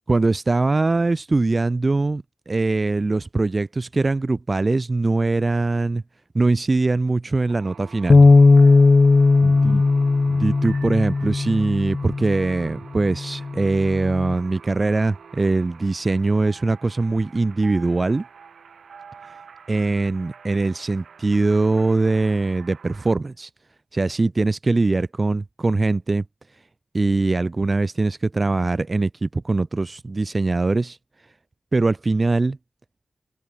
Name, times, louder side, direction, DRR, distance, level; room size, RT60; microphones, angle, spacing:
voice 1, 0.1-6.0 6.3-8.2 9.4-9.8 10.3-18.2 19.7-23.5 23.9-26.2 26.9-31.0 31.7-32.6, right 3 dB, 35° right, 0.7 m, -22 dB
sound 1, 7.5-23.2, right 6 dB, 85° right, 4.1 m, -45 dB
Bass guitar, 8.1-12.5 13.2-14.3, left 3 dB, 40° left, 0.5 m, -16 dB
open air
wide cardioid pair, 95°, 0 cm